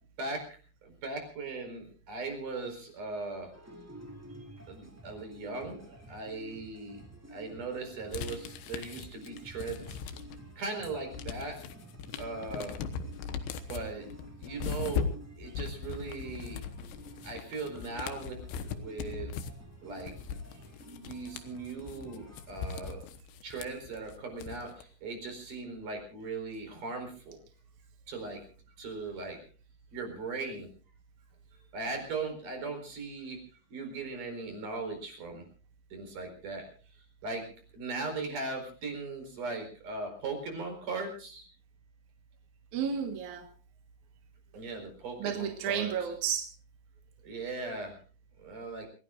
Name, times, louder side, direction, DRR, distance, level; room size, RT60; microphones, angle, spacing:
voice 1, 0.8-3.5 4.7-7.0 7.3-10.0 10.6-11.6 12.2-12.8 13.7-14.1 14.4-15.1 15.4-16.6 17.2-19.3 19.8-20.1 20.8-23.0 23.4-27.4 28.1-28.4 28.8-29.4 29.9-30.7 31.7-33.4 33.7-35.5 35.9-36.7 36.9-37.4 37.7-41.5 44.5-45.9 47.2-48.0 48.4-48.9, right 3 dB, 45° right, 4 dB, 5.9 m, -38 dB
sound 1, 3.5-22.7, right 2 dB, 5° right, 1.2 m, -52 dB
sound 2, 8.1-10.5 10.9-24.8, left 7 dB, 75° left, 3.2 m, -39 dB
voice 2, 42.7-43.5 45.2-46.5, right 8 dB, 60° right, 5 dB, 2.0 m, -32 dB
28.0 x 17.5 x 2.5 m, 0.39 s
omnidirectional pair, 5.5 m